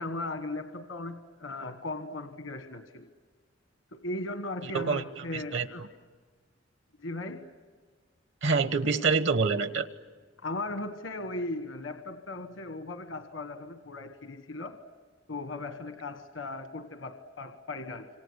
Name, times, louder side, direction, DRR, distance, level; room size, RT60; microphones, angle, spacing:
voice 1, 0.0-3.1 3.9-5.9 7.0-7.5 10.4-14.8 15.3-18.1, left 2 dB, 85° left, 8 dB, 1.4 m, -37 dB
voice 2, 4.7-5.9 8.4-9.9, right 4 dB, 70° right, 11 dB, 1.2 m, -27 dB
27.0 x 25.5 x 8.2 m, 1.5 s
head